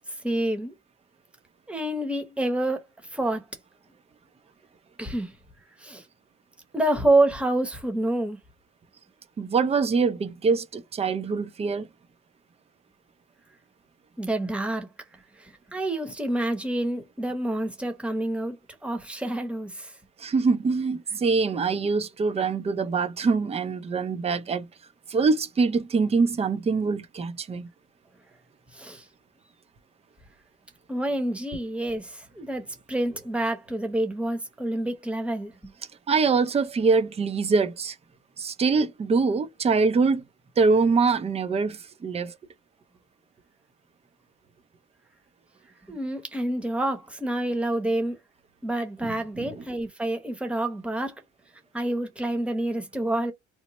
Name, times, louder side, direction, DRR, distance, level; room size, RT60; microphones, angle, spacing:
voice 1, 0.2-0.7 1.7-2.8 3.1-3.4 5.0-5.3 5.8-6.0 6.7-8.4 14.2-14.9 15.4-18.6 18.8-19.9 28.7-29.0 30.9-35.7 45.9-48.2 48.6-51.1 51.7-53.3, right 1 dB, 5° right, 0.9 m, -27 dB
voice 2, 9.4-11.9 20.2-24.7 25.1-27.7 36.1-38.0 38.4-40.3 40.6-42.3 49.4-49.6, right 4 dB, 20° right, 0.5 m, -24 dB
3.0 x 2.1 x 3.9 m
cardioid pair, 120°, 29 cm